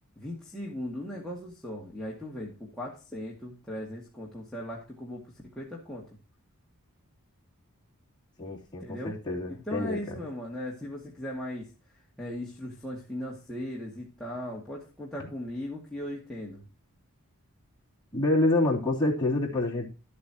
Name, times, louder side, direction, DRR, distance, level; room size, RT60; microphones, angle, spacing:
voice 1, 0.2-5.2 5.6-6.1 8.8-9.2 9.7-11.7 12.2-16.6, left 1 dB, 5° left, -6 dB, 2.1 m, -38 dB
voice 2, 8.4-10.2 15.2-15.3 18.1-19.9, left 2 dB, 20° left, -4 dB, 3.1 m, -27 dB
13.0 x 8.5 x 2.9 m, 0.33 s
head